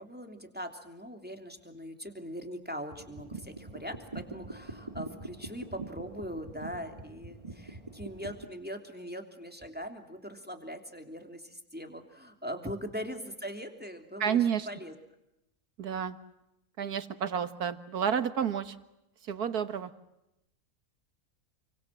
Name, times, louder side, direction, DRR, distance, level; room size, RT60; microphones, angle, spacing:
voice 1, 0.0-14.4 14.7-14.9, equal, 5° right, 5 dB, 3.1 m, -41 dB
sound 1, 2.9-8.4, right 2 dB, 20° right, 3.0 m, -44 dB
voice 2, 14.2-14.7 15.8-16.2 16.8-18.8 19.2-19.9, right 8 dB, 90° right, 11 dB, 2.0 m, -30 dB
29.5 x 25.0 x 7.6 m, 0.88 s
omnidirectional pair, 1.6 m